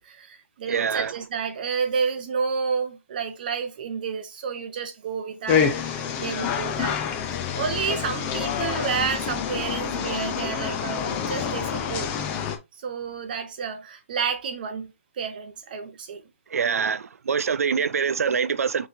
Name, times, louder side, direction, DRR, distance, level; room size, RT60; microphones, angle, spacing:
voice 1, 0.0-7.0 7.5-12.1 12.7-14.9 15.1-16.2, right 6 dB, 40° right, 0.6 m, -30 dB
voice 2, 0.7-1.1 16.5-18.9, right 6 dB, 90° right, 0.5 m, -25 dB
Night Chipinque, 5.5-12.6, left 7 dB, 15° left, 0.4 m, -27 dB
5.8 x 3.1 x 2.5 m
hypercardioid pair, 170°, 8 cm